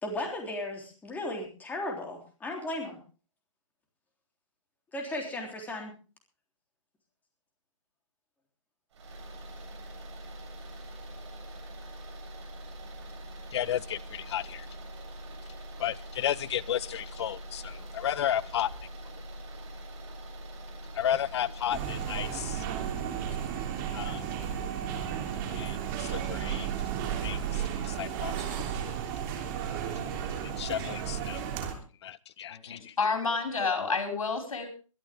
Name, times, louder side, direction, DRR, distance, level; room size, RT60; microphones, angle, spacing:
voice 1, 0.0-3.0 4.9-5.9, left 1 dB, 10° left, 1 dB, 3.5 m, -35 dB
sound 1, 8.9-22.6, equal, 55° right, 7.9 m, -44 dB
voice 2, 13.5-14.7 15.8-18.7 20.9-22.6 23.9-24.2 25.5-26.7 27.2-28.3 30.6-31.5 32.0-32.9, left 10 dB, 50° left, 19 dB, 0.9 m, -33 dB
sound 2, 21.7-31.8, right 8 dB, 35° right, 3.3 m, -33 dB
voice 3, 32.5-34.7, left 4 dB, 80° left, 3 dB, 5.7 m, -30 dB
22.5 x 11.5 x 3.6 m, 0.36 s
hypercardioid pair, 140°, 17 cm